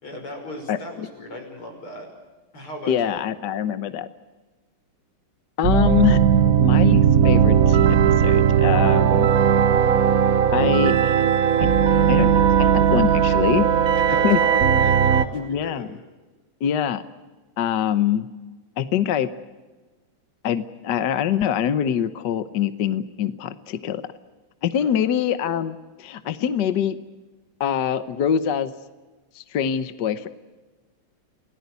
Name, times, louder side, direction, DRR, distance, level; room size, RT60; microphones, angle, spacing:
voice 1, 0.0-2.1 2.5-3.2 13.9-15.9 24.8-25.1, left 1 dB, 90° left, 3 dB, 6.7 m, -37 dB
voice 2, 0.7-1.1 2.9-4.1 5.6-6.2 6.6-9.3 10.5-11.1 11.6-11.7 12.1-13.7 14.2-14.8 15.3-16.0 16.6-17.0 17.6-18.3 18.8-19.3 20.4-24.0 24.6-27.0 27.6-28.7 29.3-30.3, left 9 dB, 60° left, 12 dB, 1.4 m, -24 dB
sound 1, 5.6-15.3, right 8 dB, 55° right, 1.1 m, -17 dB
29.0 x 18.5 x 8.2 m, 1.2 s
omnidirectional pair, 2.3 m